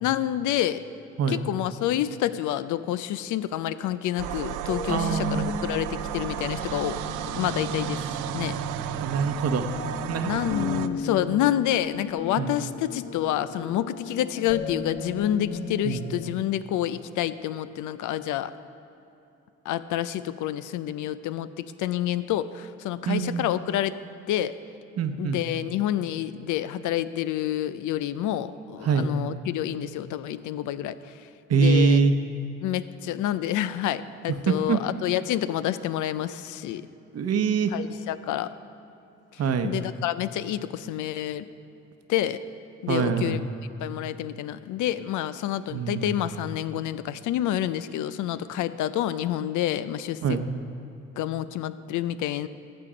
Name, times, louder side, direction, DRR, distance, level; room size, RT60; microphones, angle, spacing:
voice 1, 0.0-0.8 1.3-8.0 8.3-8.6 10.2-18.5 19.7-24.0 24.3-24.5 25.2-31.0 31.5-32.0 32.6-36.9 37.7-38.5 39.6-41.5 42.1-42.4 42.8-43.4 43.8-50.4 51.2-52.5, left 12 dB, 80° left, 14 dB, 0.5 m, -28 dB
sound 1, 4.2-10.9, right 12 dB, 80° right, 0.5 m, -33 dB
sound 2, 4.7-16.3, left 4 dB, 40° left, 0.7 m, -36 dB
voice 2, 4.9-5.5 9.0-9.7 10.0-10.4 12.4-12.5 15.8-16.0 23.1-23.5 25.0-25.4 28.8-29.1 31.5-32.1 34.5-34.8 37.1-37.8 39.4-39.7 42.9-43.5 45.7-46.2 50.2-50.4, right 5 dB, 55° right, 8 dB, 0.8 m, -24 dB
14.5 x 6.8 x 5.0 m, 2.8 s
cardioid pair, 90°, 30 cm